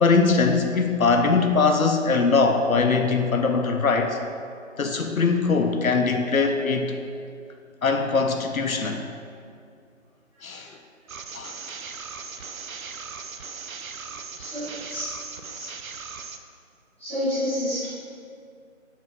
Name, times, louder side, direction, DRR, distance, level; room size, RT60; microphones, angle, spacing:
voice 1, 0.0-4.2 4.8-7.0 7.8-9.0 10.4-10.7 11.3-11.5 15.6-15.7, left 4 dB, 85° left, 5 dB, 0.6 m, -21 dB
sound 1, 11.1-16.4, right 5 dB, 80° right, 0.5 m, -38 dB
voice 2, 14.4-15.1 17.0-17.9, equal, 10° left, -18 dB, 1.4 m, -28 dB
5.7 x 4.7 x 3.6 m, 2.3 s
figure-of-eight pair, 165°, 41 cm